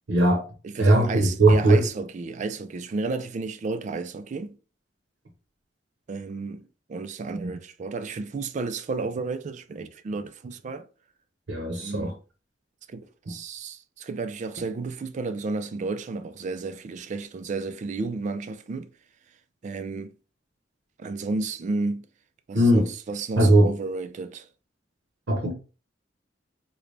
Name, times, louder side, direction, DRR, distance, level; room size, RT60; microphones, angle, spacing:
voice 1, 0.1-0.5 0.8-1.8 11.5-12.1 13.3-13.4 22.5-22.9 23.4-23.7 25.3-25.5, right 1 dB, 75° right, 0.8 m, -19 dB
voice 2, 0.6-4.6 6.1-10.9 11.8-12.2 12.9-18.9 19.6-20.1 21.0-22.1 22.5-24.5, right 3 dB, 40° right, 0.3 m, -32 dB
3.8 x 2.2 x 3.2 m
head